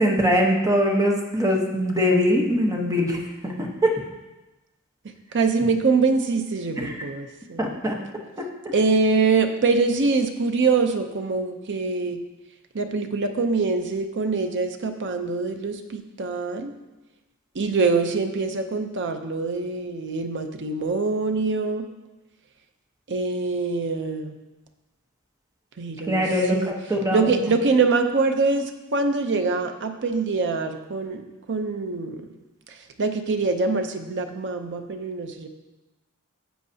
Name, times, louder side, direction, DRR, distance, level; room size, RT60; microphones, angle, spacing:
voice 1, 0.0-4.0 6.8-7.0 7.6-7.9 8.6-8.7 26.1-27.3, equal, 15° right, 0 dB, 1.0 m, -22 dB
voice 2, 5.3-7.7 8.7-12.2 12.7-16.7 17.5-21.8 23.1-24.3 25.8-26.2 26.5-26.7 27.1-32.3 32.7-35.5, right 4 dB, 55° right, 7 dB, 0.7 m, -24 dB
10.5 x 7.3 x 2.8 m, 1.1 s
head